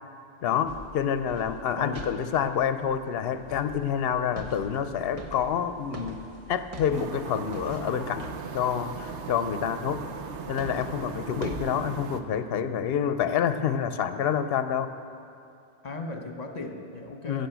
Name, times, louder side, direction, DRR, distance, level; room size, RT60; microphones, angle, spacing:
voice 1, 0.4-6.2 6.5-8.3 8.5-10.1 10.5-14.9 17.3-17.5, left 8 dB, 65° left, 11 dB, 0.8 m, -28 dB
sound 1, 0.6-9.3 9.9-11.8, right 1 dB, 35° right, 1.0 m, -44 dB
voice 2, 1.8-2.1 15.8-17.5, left 3 dB, 40° left, 5 dB, 1.1 m, -36 dB
sound 2, 6.9-12.2, right 6 dB, 85° right, 1.0 m, -38 dB
14.5 x 6.9 x 8.1 m, 2.6 s
omnidirectional pair, 1.2 m